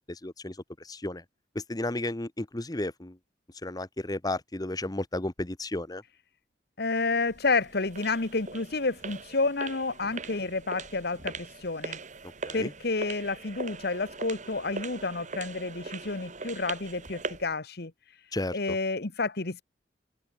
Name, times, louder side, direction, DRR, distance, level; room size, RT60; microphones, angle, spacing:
voice 1, 0.1-1.2 1.5-3.2 3.6-6.0 12.2-12.7 18.3-18.8, left 2 dB, 20° left, 1.0 m, -33 dB
voice 2, 6.8-12.0 12.5-17.9 18.5-19.6, left 3 dB, 60° left, 1.5 m, -30 dB
sound 1, 7.3-17.5, right 4 dB, 40° right, 2.6 m, -41 dB
open air
head